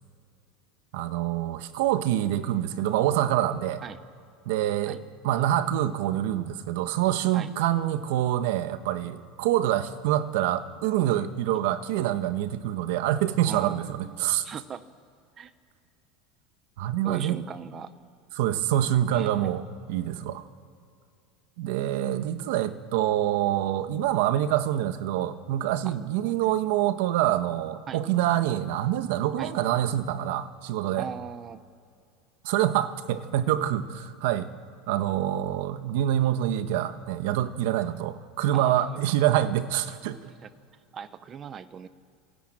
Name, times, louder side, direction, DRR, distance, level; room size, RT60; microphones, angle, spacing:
voice 1, 0.9-3.8 4.4-14.4 16.8-17.4 18.4-20.4 21.6-31.1 32.4-34.5 34.9-40.2, right 12 dB, 65° right, 11 dB, 1.2 m, -26 dB
voice 2, 13.4-14.9 15.4-15.5 17.0-17.9 19.1-19.5 25.8-26.5 27.9-28.0 29.4-29.5 31.0-31.6 38.5-39.0 40.2-40.5 40.9-41.9, right 7 dB, 20° right, 14 dB, 0.7 m, -39 dB
27.5 x 13.5 x 9.0 m, 2.4 s
supercardioid pair, 175°, 0 cm